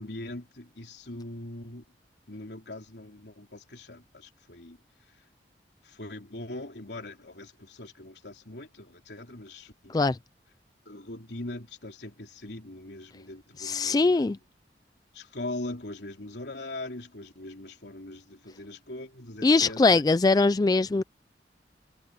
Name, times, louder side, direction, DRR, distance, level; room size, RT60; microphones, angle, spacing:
voice 1, 0.0-1.8 2.3-4.8 5.8-10.0 10.9-14.4 15.1-20.0 21.0-21.1, left 2 dB, 75° left, 3.5 m, -41 dB
voice 2, 13.6-14.4 19.4-21.0, left 3 dB, 20° left, 0.3 m, -22 dB
head